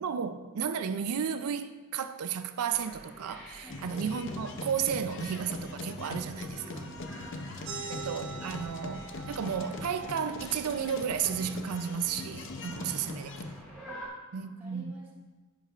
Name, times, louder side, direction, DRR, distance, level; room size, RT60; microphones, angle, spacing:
voice 1, 0.0-6.8 7.9-13.3 14.3-15.0, right 7 dB, 85° right, 0.4 m, -33 dB
sound 1, 2.7-14.1, equal, 5° left, 1.3 m, -49 dB
sound 2, 3.7-13.6, left 2 dB, 55° left, 0.6 m, -41 dB
voice 2, 6.5-7.8 12.6-13.3 13.9-15.1, equal, 10° right, 0.9 m, -52 dB
sound 3, 7.6-12.8, right 5 dB, 60° right, 1.1 m, -45 dB
10.0 x 5.6 x 2.5 m
head